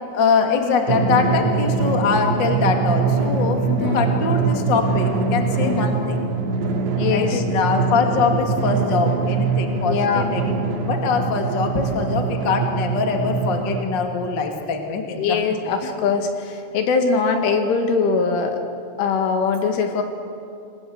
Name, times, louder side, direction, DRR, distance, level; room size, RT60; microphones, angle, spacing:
voice 1, 0.1-6.2 7.1-10.4 10.9-15.6 15.8-16.0, left 5 dB, 45° left, 3 dB, 1.4 m, -23 dB
Drum, 0.9-13.8, right 4 dB, 65° right, 4.0 m, -23 dB
voice 2, 3.7-4.1 5.6-5.9 7.0-7.4 9.9-10.3 15.0-18.6 19.0-20.0, left 5 dB, 70° left, 5 dB, 4.4 m, -22 dB
28.0 x 22.0 x 7.9 m, 2.6 s
omnidirectional pair, 5.9 m